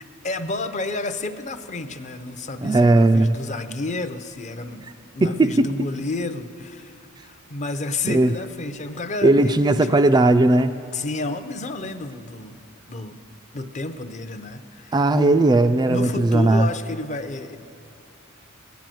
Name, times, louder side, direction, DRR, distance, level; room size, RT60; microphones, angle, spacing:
voice 1, 0.0-10.0 10.9-12.6 12.9-13.2 13.5-15.5 15.9-17.6, left 3 dB, 35° left, 10 dB, 0.6 m, -31 dB
voice 2, 2.6-3.4 5.2-5.7 8.1-8.3 9.2-10.8 14.9-16.7, right 2 dB, 20° right, 8 dB, 0.3 m, -17 dB
16.5 x 10.5 x 7.7 m, 2.6 s
head